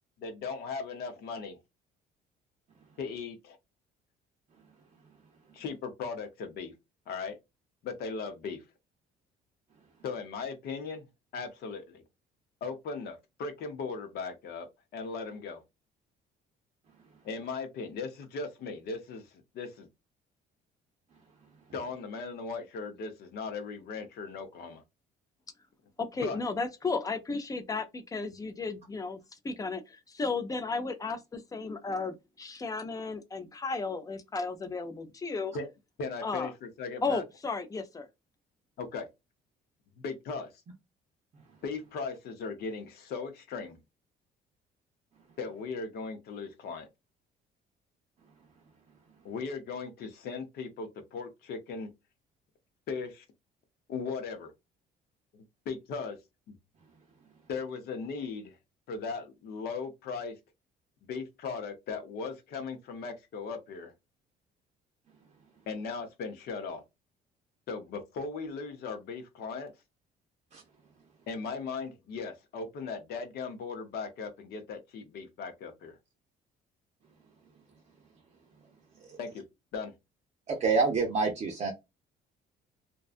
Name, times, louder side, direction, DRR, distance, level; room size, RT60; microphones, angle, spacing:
voice 1, 0.2-1.6 3.0-3.6 5.5-6.7 7.1-7.4 7.8-8.6 10.0-11.0 11.3-12.0 12.6-14.7 14.9-15.6 17.2-19.3 19.5-19.9 21.7-24.8 26.2-26.4 35.5-35.7 36.0-37.2 38.8-39.1 40.0-40.5 41.6-43.8 45.4-46.9 49.2-51.9 52.9-53.2 53.9-54.5 55.7-56.2 56.5-56.6 57.5-58.6 58.9-60.3 61.0-63.9 65.7-66.8 67.7-69.7 71.3-75.9 79.2-79.4 79.7-79.9, left 4 dB, 70° left, 0.8 m, -38 dB
voice 2, 26.0-35.5 36.2-36.5 37.0-38.1, left 4 dB, 20° left, 0.5 m, -34 dB
voice 3, 80.5-81.7, right 4 dB, 40° right, 0.6 m, -27 dB
2.6 x 2.2 x 2.4 m
cardioid pair, 110°, 17 cm